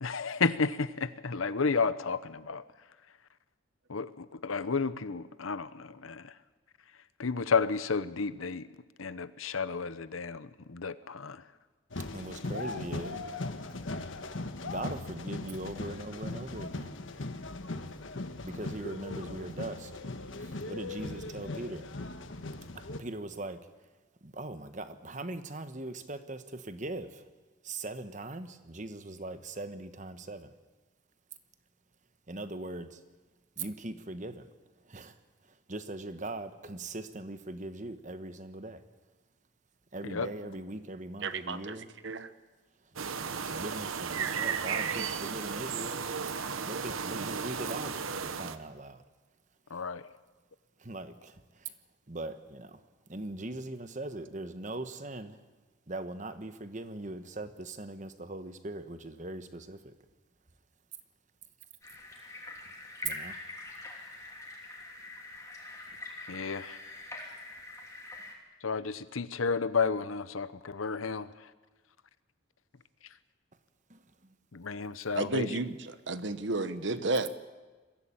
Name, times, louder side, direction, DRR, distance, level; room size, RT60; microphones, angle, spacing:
voice 1, 0.0-2.6 3.9-6.3 7.2-8.7 9.0-11.4 40.0-40.3 49.7-50.1 66.3-66.8 68.6-71.3 74.5-75.6, left 5 dB, 90° left, 14 dB, 0.9 m, -32 dB
sound 1, 11.9-23.0, left 2 dB, 70° left, 1.3 m, -39 dB
voice 2, 12.1-13.2 13.8-14.0 14.6-17.0 18.4-19.9 20.2-21.9 22.7-23.7 24.2-27.3 27.6-30.5 32.3-33.0 33.6-34.5 34.8-35.2 35.4-38.8 39.9-41.9 42.8-42.9 43.2-46.4 46.6-49.0 50.8-51.7 52.1-52.8 53.1-55.4 55.9-59.9 63.0-63.4 73.9-74.3, right 2 dB, 35° right, 10 dB, 1.1 m, -40 dB
voice 3, 41.2-41.8 42.0-42.3 75.1-77.4, right 2 dB, 60° right, 12 dB, 1.1 m, -32 dB
sound 2, 43.0-48.6, right 6 dB, 90° right, 1.1 m, -34 dB
sound 3, 61.8-68.3, left 2 dB, 15° left, 3.0 m, -44 dB
22.0 x 15.5 x 8.8 m, 1.3 s
head